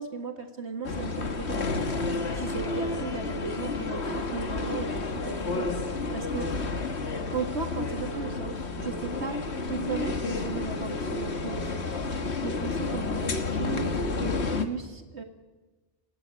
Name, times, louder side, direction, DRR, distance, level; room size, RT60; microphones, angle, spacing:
voice 1, 0.0-5.7 6.1-6.5 7.3-13.9 14.2-15.2, right 4 dB, 65° right, 4 dB, 2.3 m, -36 dB
sound 1, 0.8-14.7, left 3 dB, 60° left, 1.9 m, -31 dB
29.5 x 18.5 x 8.6 m, 1.3 s
omnidirectional pair, 1.2 m